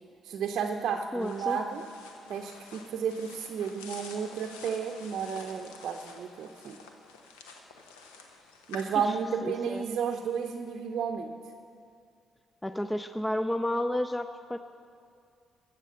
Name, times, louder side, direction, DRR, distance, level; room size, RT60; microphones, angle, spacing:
voice 1, 0.2-1.8 2.3-6.8 8.7-11.3, right 7 dB, 65° right, 3 dB, 0.6 m, -32 dB
voice 2, 1.1-1.6 9.4-9.8 12.6-14.6, left 1 dB, 15° left, 10 dB, 0.5 m, -31 dB
sound 1, 1.2-8.9, left 4 dB, 85° left, 0.9 m, -49 dB
14.5 x 7.5 x 5.6 m, 2.3 s
hypercardioid pair, 45°, 0 cm